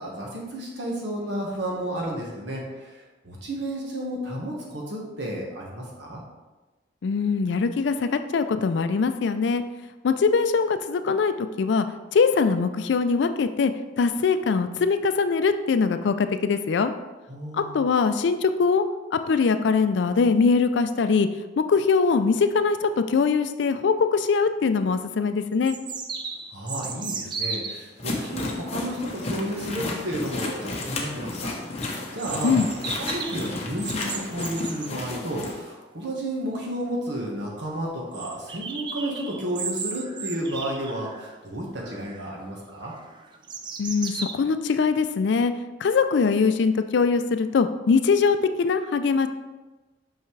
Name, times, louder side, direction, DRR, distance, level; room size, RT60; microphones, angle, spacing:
voice 1, 0.0-3.0 3.2-6.2 17.3-17.8 26.5-31.5 32.1-32.5 32.9-42.9, right 1 dB, 60° right, -2 dB, 1.4 m, -32 dB
voice 2, 7.0-9.6 10.0-11.9 12.1-13.7 14.0-16.9 17.5-18.8 19.1-21.3 21.6-25.8 32.4-32.7 43.8-45.5 45.8-49.3, left 5 dB, 65° left, 10 dB, 0.4 m, -22 dB
sound 1, 24.7-24.8 25.7-27.9 32.2-34.9 36.6-36.7 36.9-37.0 37.4-37.5 38.1-41.4 41.8-42.3 42.8-44.3, right 5 dB, 25° right, 0.3 m, -35 dB
sound 2, 28.0-35.6, left 2 dB, 35° left, 0.8 m, -32 dB
5.8 x 5.5 x 3.2 m, 1.2 s
head